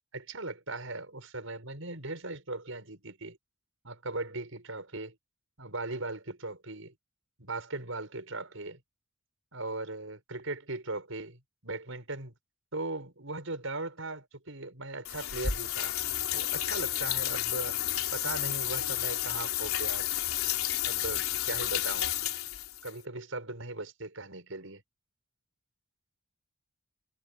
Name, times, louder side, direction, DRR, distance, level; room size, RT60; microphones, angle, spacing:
voice 1, 0.1-3.4 3.8-5.1 5.6-6.9 7.4-8.8 9.5-12.3 12.7-16.0 16.3-17.8 18.1-20.1 20.8-22.1 22.8-24.8, right 2 dB, 70° right, 6.1 m, -38 dB
sound 1, 15.0-22.9, left 12 dB, 85° left, 3.7 m, -31 dB
head